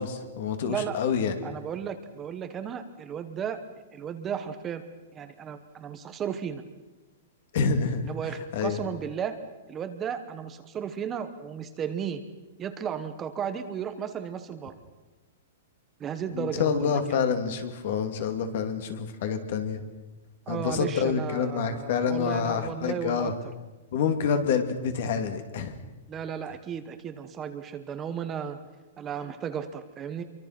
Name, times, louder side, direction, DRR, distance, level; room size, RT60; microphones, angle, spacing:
voice 1, 0.0-1.3 7.5-8.1 8.5-8.8 16.3-19.8 20.5-23.3 23.9-25.7, left 6 dB, 50° left, 8 dB, 2.6 m, -27 dB
voice 2, 0.7-1.0 1.4-3.6 3.9-4.8 5.1-6.6 8.0-9.4 9.7-12.2 12.6-14.7 16.0-17.2 20.5-23.3 26.1-28.6 29.0-30.2, right 8 dB, 15° right, 9 dB, 1.1 m, -34 dB
26.5 x 24.0 x 6.0 m, 1.1 s
hypercardioid pair, 170°, 0 cm